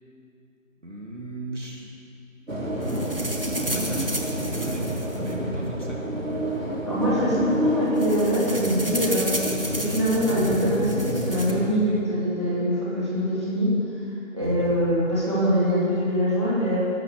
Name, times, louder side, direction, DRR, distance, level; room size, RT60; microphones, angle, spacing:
voice 1, 0.8-1.9 3.6-6.1 14.4-14.8, right 1 dB, 65° right, -1 dB, 2.6 m, -36 dB
sound 1, 2.5-11.7, equal, 80° right, 3.5 m, -28 dB
sound 2, 2.8-6.0 6.9-7.0 7.2-7.4 7.7-11.5, right 1 dB, 45° right, 1.3 m, -33 dB
voice 2, 6.8-9.3 9.7-13.7 14.3-16.9, equal, 20° right, -9 dB, 2.6 m, -24 dB
14.5 x 12.0 x 6.9 m, 2.6 s
figure-of-eight pair, 175°, 40 cm